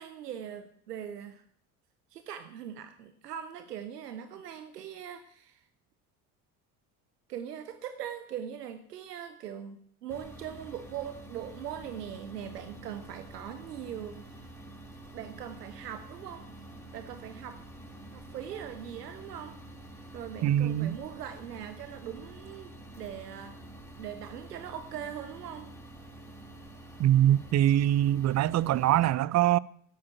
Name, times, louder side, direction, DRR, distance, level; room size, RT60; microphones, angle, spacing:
voice 1, 0.0-1.4 2.1-5.6 7.3-14.5 15.1-16.4 16.9-17.6 18.1-19.6 19.9-23.6 24.0-25.7, right 9 dB, 85° right, 0.8 m, -41 dB
sound 1, 10.1-29.1, right 2 dB, 5° left, 4.8 m, -48 dB
voice 2, 20.4-21.0 27.0-29.6, right 12 dB, 35° right, 0.5 m, -23 dB
10.5 x 8.7 x 8.8 m
hypercardioid pair, 60°, 46 cm